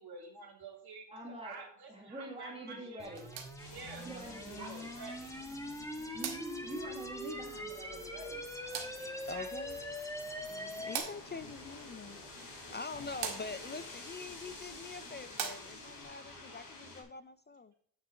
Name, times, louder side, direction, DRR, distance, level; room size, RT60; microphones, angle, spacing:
voice 1, 0.0-3.2 3.7-4.1 4.6-5.4 9.0-9.8, right 5 dB, 55° right, -1 dB, 3.5 m, -49 dB
voice 2, 1.1-1.6 1.9-3.3 4.0-4.9 6.1-8.4, right 1 dB, 15° right, -2 dB, 1.9 m, -45 dB
sound 1, 3.0-11.0, left 1 dB, 5° left, 1.2 m, -43 dB
sound 2, 3.0-16.0, right 7 dB, 85° right, 1.9 m, -47 dB
sound 3, 3.6-17.0, left 2 dB, 45° left, 3.4 m, -51 dB
voice 3, 9.3-9.8 10.5-17.7, left 4 dB, 25° left, 13 dB, 0.3 m, -45 dB
9.3 x 6.2 x 4.4 m, 0.65 s
cardioid pair, 120°, 45 cm